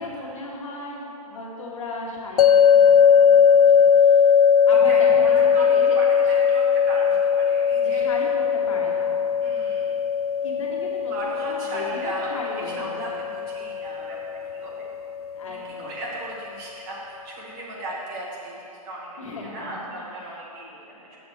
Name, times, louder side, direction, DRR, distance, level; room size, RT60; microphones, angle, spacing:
voice 1, 0.0-2.4 2.7-4.3 4.7-6.0 7.8-9.1 9.4-9.5 10.4-13.2 15.4-16.0 19.2-20.0 20.2-20.4, left 2 dB, 55° left, -2 dB, 1.7 m, -36 dB
sound 1, 2.4-15.5, left 7 dB, 70° left, 0.4 m, -19 dB
voice 2, 4.7-8.0 9.4-9.9 11.1-14.2 14.5-14.9 15.5-21.2, right 1 dB, 30° right, -5 dB, 1.6 m, -36 dB
8.4 x 7.0 x 4.3 m, 2.7 s
hypercardioid pair, 155°, 20 cm